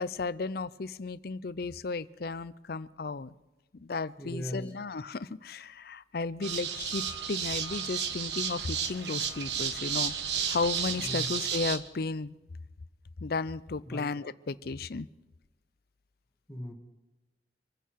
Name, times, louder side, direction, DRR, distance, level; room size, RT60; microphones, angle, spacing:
voice 1, 0.0-3.3 3.7-7.0 7.3-10.1 10.5-12.4 13.2-15.1, left 4 dB, 55° left, 0.5 m, -34 dB
voice 2, 4.2-4.7 11.0-11.3 13.9-14.1 16.5-16.7, equal, 10° left, 1.6 m, -38 dB
sound 1, 6.4-11.8, right 7 dB, 70° right, 1.2 m, -32 dB
25.5 x 10.0 x 4.7 m
head